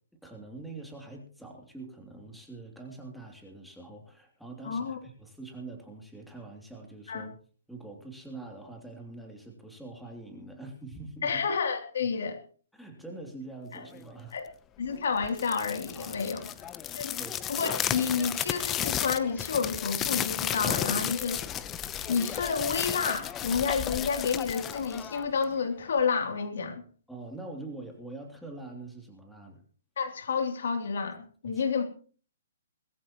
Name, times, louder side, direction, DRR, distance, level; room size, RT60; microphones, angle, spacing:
voice 1, 0.2-7.3 7.7-11.4 12.7-14.4 15.9-16.4 16.8-17.4 27.1-29.6 31.4-31.6, right 2 dB, ahead, 1 dB, 3.1 m, -44 dB
voice 2, 4.6-5.0 7.1-7.2 11.2-12.4 13.7-13.9 14.3-14.5 14.8-16.5 16.9-17.2 17.5-21.4 22.1-26.8 30.0-31.8, left 5 dB, 70° left, 4 dB, 3.1 m, -30 dB
sound 1, 15.2-25.6, left 10 dB, 20° left, 0.9 m, -33 dB
21.0 x 14.5 x 3.1 m, 0.41 s
hypercardioid pair, 140°, 0 cm